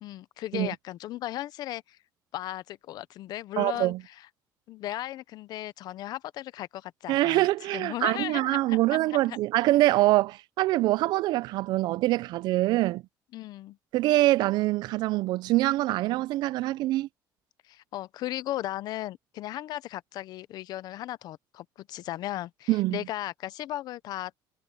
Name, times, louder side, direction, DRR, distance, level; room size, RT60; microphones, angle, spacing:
voice 1, 0.0-2.0 2.3-4.3 4.7-9.4 13.3-13.8 17.6-24.3, left 14 dB, 60° left, 0.7 m, -36 dB
voice 2, 3.6-4.0 7.1-13.0 13.9-17.1 22.7-23.0, right 17 dB, 70° right, 0.4 m, -24 dB
cardioid pair, 165°, 8 cm